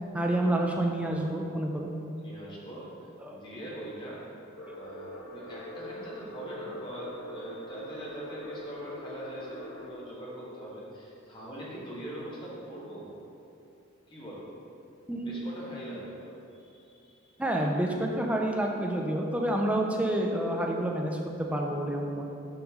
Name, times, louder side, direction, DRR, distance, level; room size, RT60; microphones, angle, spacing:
voice 1, 0.1-1.9 3.2-3.4 15.1-15.5 17.4-22.2, right 1 dB, 5° right, 0 dB, 0.4 m, -28 dB
voice 2, 0.9-1.3 2.2-4.2 4.7-13.1 14.1-14.5 15.2-17.4, right 1 dB, 20° left, -7 dB, 1.4 m, -42 dB
sound 1, 4.6-9.9, left 1 dB, 80° left, 1.2 m, -43 dB
6.0 x 5.2 x 3.6 m, 2.7 s
head